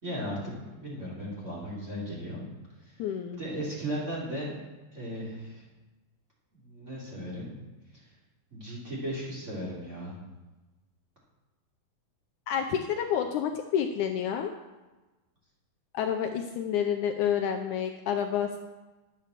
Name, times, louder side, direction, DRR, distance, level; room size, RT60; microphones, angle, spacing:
voice 1, 0.0-2.4 2.8-2.9 3.4-4.5 4.9-5.6 6.5-7.5 7.9-8.0 8.5-10.1, equal, 20° right, -6 dB, 3.8 m, -36 dB
voice 2, 3.0-3.4 12.5-14.5 15.9-18.6, left 8 dB, 80° left, 5 dB, 1.8 m, -29 dB
11.5 x 7.7 x 6.7 m, 1.2 s
omnidirectional pair, 4.1 m